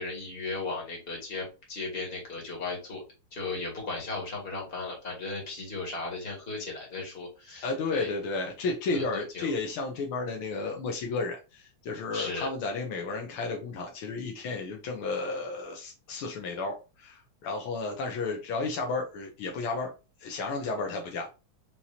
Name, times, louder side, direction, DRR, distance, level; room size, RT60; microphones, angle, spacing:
voice 1, 0.0-3.0 3.3-8.1 8.9-9.5 12.1-12.5, left 3 dB, 30° left, -2 dB, 1.9 m, -36 dB
voice 2, 7.6-19.9 20.2-21.3, left 3 dB, 75° left, 2 dB, 1.7 m, -32 dB
5.5 x 3.1 x 2.8 m, 0.30 s
omnidirectional pair, 2.4 m